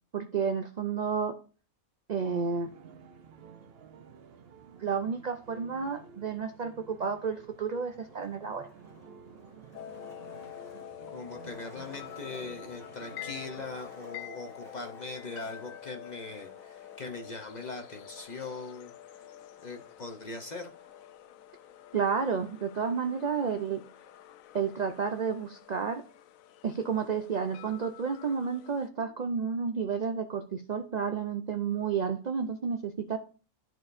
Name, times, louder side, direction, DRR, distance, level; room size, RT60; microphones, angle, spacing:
voice 1, 0.1-1.4 2.1-2.7 4.8-8.7 21.9-23.8 24.5-26.0 26.6-33.2, right 6 dB, 70° right, 7 dB, 0.4 m, -31 dB
sound 1, 2.2-13.8, right 6 dB, 55° right, 0.8 m, -52 dB
Skateboard, 7.4-24.4, left 1 dB, ahead, 1.9 m, -56 dB
sound 2, 9.7-28.9, left 12 dB, 75° left, 1.0 m, -48 dB
voice 2, 11.1-18.9 19.6-20.7, left 3 dB, 40° left, 4 dB, 0.6 m, -41 dB
13.0 x 4.6 x 2.6 m, 0.37 s
omnidirectional pair, 1.5 m